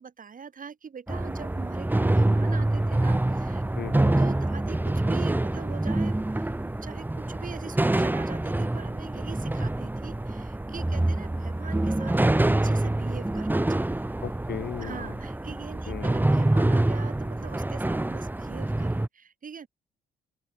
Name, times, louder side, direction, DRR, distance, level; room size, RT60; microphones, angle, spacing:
voice 1, 0.0-3.6 3.9-14.1 14.8-19.7, right 6 dB, 45° right, 3.7 m, -43 dB
sound 1, 1.1-19.1, right 1 dB, 10° right, 1.4 m, -26 dB
voice 2, 3.8-4.1 14.2-15.1 15.9-16.2, left 10 dB, 55° left, 1.0 m, -37 dB
open air
cardioid pair, 90°, 20 cm